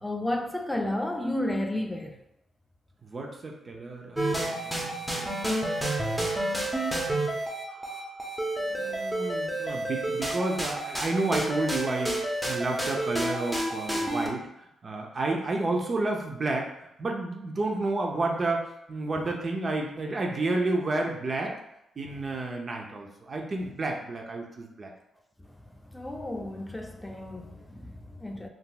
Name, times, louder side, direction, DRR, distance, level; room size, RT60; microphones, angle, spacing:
voice 1, 0.0-2.2 25.4-28.5, left 1 dB, 10° left, 0.4 m, -32 dB
voice 2, 3.0-5.3 6.4-7.0 7.7-8.1 8.7-14.5 14.8-21.6 22.0-24.9, right 2 dB, 45° right, 0.6 m, -31 dB
sound 1, 4.2-14.3, right 1 dB, 10° right, 0.7 m, -30 dB
3.8 x 2.3 x 2.3 m
supercardioid pair, 55°, 0 cm